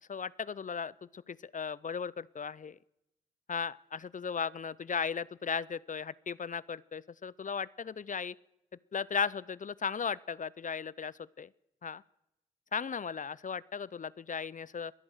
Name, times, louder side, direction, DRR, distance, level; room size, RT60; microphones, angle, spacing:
voice 1, 0.1-2.8 3.5-8.4 8.9-11.5 11.8-12.0 12.7-14.9, left 6 dB, 40° left, 21 dB, 0.5 m, -36 dB
23.0 x 8.6 x 6.6 m, 0.85 s
supercardioid pair, 45°, 20 cm